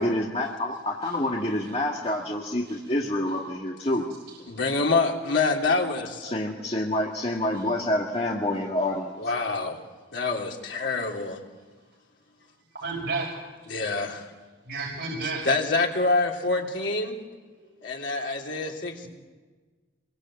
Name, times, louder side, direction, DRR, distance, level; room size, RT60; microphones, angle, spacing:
voice 1, 0.0-4.1 6.2-9.3, left 1 dB, 35° left, -1 dB, 1.9 m, -27 dB
voice 2, 4.5-6.3 9.2-9.8 10.1-11.4 13.7-14.2 15.4-17.2 17.8-19.1, left 3 dB, 85° left, 0 dB, 3.4 m, -26 dB
voice 3, 12.8-13.3 14.7-15.5 17.5-17.7, right 3 dB, 80° right, -3 dB, 5.2 m, -31 dB
26.0 x 22.5 x 7.8 m, 1.3 s
head